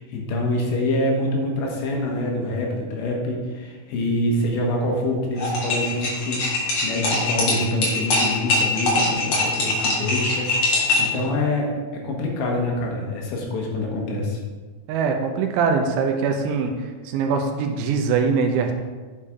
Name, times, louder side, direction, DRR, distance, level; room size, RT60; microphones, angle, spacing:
voice 1, 0.0-14.4, left 1 dB, 75° left, -1 dB, 3.3 m, -26 dB
sound 1, 5.4-11.2, left 2 dB, 50° left, 2.3 m, -22 dB
voice 2, 14.9-16.7 17.1-18.7, right 5 dB, 80° right, 4 dB, 3.0 m, -22 dB
9.6 x 7.1 x 3.6 m, 1.4 s
omnidirectional pair, 5.5 m